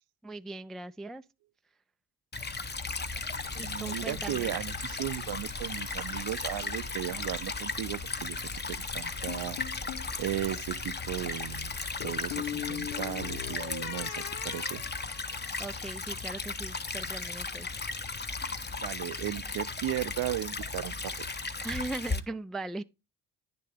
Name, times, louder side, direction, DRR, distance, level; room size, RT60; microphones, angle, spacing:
voice 1, 0.2-1.2 3.5-4.6 15.6-17.8 21.6-22.8, right 2 dB, ahead, 0.3 m, -39 dB
Stream / Trickle dribble, 2.3-22.2, left 3 dB, 25° left, 0.9 m, -36 dB
sound 1, 2.6-12.1, left 2 dB, 45° left, 1.3 m, -47 dB
voice 2, 3.5-9.8 10.2-14.8 18.8-21.2 21.6-21.7, right 14 dB, 55° right, 0.6 m, -36 dB
sound 2, 9.3-10.1 12.0-15.8, left 12 dB, 80° left, 0.6 m, -40 dB
9.7 x 6.7 x 3.4 m
hypercardioid pair, 55°, 44 cm